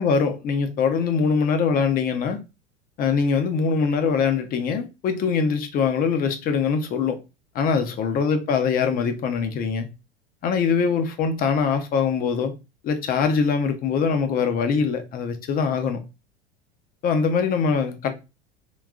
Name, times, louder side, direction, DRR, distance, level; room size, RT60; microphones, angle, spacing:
voice 1, 0.0-2.4 3.0-7.2 7.5-9.9 10.4-12.5 12.8-16.0 17.0-18.1, left 5 dB, 30° left, 0.6 m, -23 dB
3.7 x 2.6 x 2.4 m
figure-of-eight pair, 80°, 31 cm